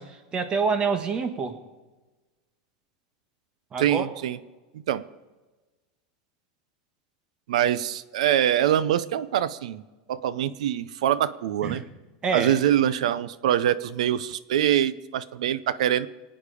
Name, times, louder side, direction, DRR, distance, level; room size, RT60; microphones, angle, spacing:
voice 1, 0.0-1.5 3.7-4.1 11.6-11.8 12.2-12.6, right 5 dB, 25° right, 8 dB, 1.5 m, -27 dB
voice 2, 3.8-4.4 4.9-5.0 7.5-9.8 10.1-11.8 12.3-16.1, right 11 dB, 90° right, 17 dB, 0.7 m, -24 dB
23.0 x 8.9 x 5.0 m, 1.2 s
supercardioid pair, 145°, 4 cm